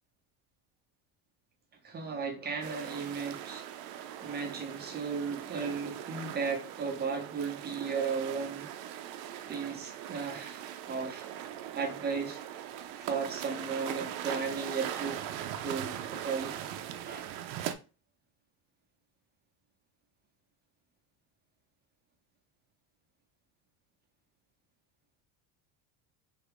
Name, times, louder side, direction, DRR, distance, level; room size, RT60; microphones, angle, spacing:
voice 1, 1.8-3.6 3.9-8.7 9.5-11.3 11.7-12.4 13.0-15.2 15.6-16.6 17.0-17.3, right 5 dB, 20° right, 0.8 m, -35 dB
sound 1, 2.6-17.7, right 10 dB, 70° right, 0.6 m, -40 dB
3.4 x 2.4 x 3.4 m
cardioid pair, 135°, 46 cm